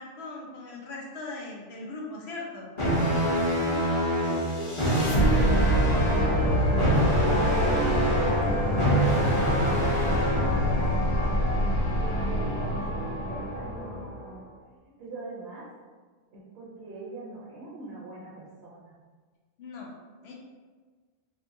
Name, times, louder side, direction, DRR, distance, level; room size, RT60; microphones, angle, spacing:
voice 1, 0.0-2.7 11.2-11.4 19.6-19.9 20.2-20.3, left 3 dB, 65° left, -2 dB, 0.8 m, -39 dB
sound 1, 2.8-10.7, equal, 35° left, 0.6 m, -26 dB
voice 2, 3.7-14.4 15.0-15.7 16.3-18.9, right 2 dB, 65° right, -5 dB, 0.8 m, -41 dB
sound 2, 4.2-14.4, equal, 90° left, 1.2 m, -26 dB
2.6 x 2.6 x 2.5 m, 1.5 s
omnidirectional pair, 1.2 m